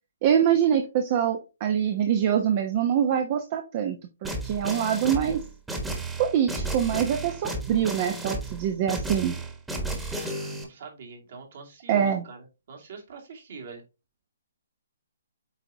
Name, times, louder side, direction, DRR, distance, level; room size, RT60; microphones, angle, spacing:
voice 1, 0.2-4.0 4.2-5.4 6.2-9.4 11.9-12.2, right 9 dB, 40° right, 5 dB, 0.9 m, -24 dB
sound 1, 4.2-10.6, right 2 dB, 5° right, 1.4 m, -33 dB
voice 2, 10.2-13.8, right 5 dB, 55° right, 1 dB, 2.5 m, -43 dB
8.3 x 4.0 x 2.8 m, 0.27 s
figure-of-eight pair, 135°, 0 cm